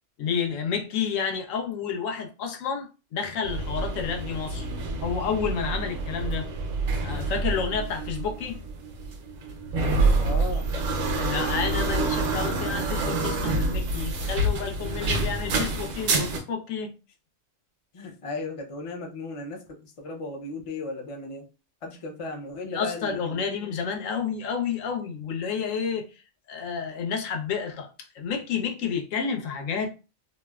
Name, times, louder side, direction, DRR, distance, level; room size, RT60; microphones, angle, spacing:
voice 1, 0.2-4.7 5.0-6.5 7.0-8.6 11.2-16.9 22.7-26.2 26.5-27.9 28.1-29.9, left 6 dB, 90° left, 1.0 m, -30 dB
sound 1, 3.4-16.4, right 3 dB, 90° right, 1.0 m, -27 dB
voice 2, 10.2-10.7 11.5-12.1 13.5-13.6 14.4-15.0 17.9-21.5 21.8-23.7, left 3 dB, 50° left, 0.4 m, -36 dB
3.1 x 2.0 x 2.2 m
omnidirectional pair, 1.3 m